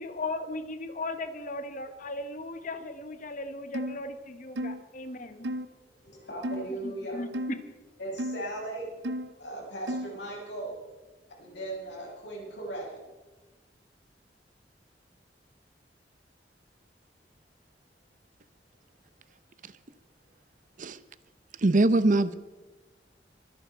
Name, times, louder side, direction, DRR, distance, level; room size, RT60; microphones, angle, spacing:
voice 1, 0.0-5.5 6.7-7.6, left 2 dB, 50° left, 9 dB, 1.4 m, -37 dB
sound 1, 3.7-4.0 4.6-4.8 5.4-5.7 6.4-6.7 7.3-7.6 8.2-8.4 9.0-9.3 9.9-10.2, equal, 85° right, 0.8 m, -33 dB
voice 2, 6.0-7.2 8.0-8.9 9.4-10.8 11.3-13.0, right 1 dB, 90° left, -2 dB, 6.5 m, -37 dB
voice 3, 21.6-22.3, right 2 dB, 50° right, 15 dB, 0.8 m, -22 dB
24.0 x 10.5 x 4.6 m, 1.2 s
head